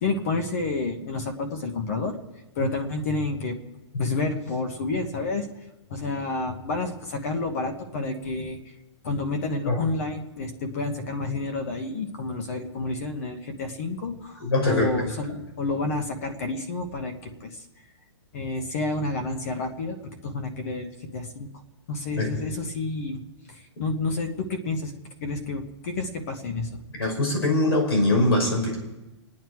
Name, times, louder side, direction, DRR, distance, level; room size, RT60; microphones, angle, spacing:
voice 1, 0.0-2.2 2.6-3.6 4.0-5.5 5.9-8.6 9.0-17.5 18.3-20.0 20.2-20.9 21.1-21.5 21.9-23.2 23.8-24.9 25.2-26.7, left 3 dB, 30° left, 6 dB, 1.2 m, -29 dB
voice 2, 14.4-14.9 22.2-22.3 27.0-28.8, left 2 dB, 55° left, 2 dB, 5.6 m, -22 dB
28.5 x 9.7 x 4.7 m, 1.0 s
hypercardioid pair, 180°, 15 cm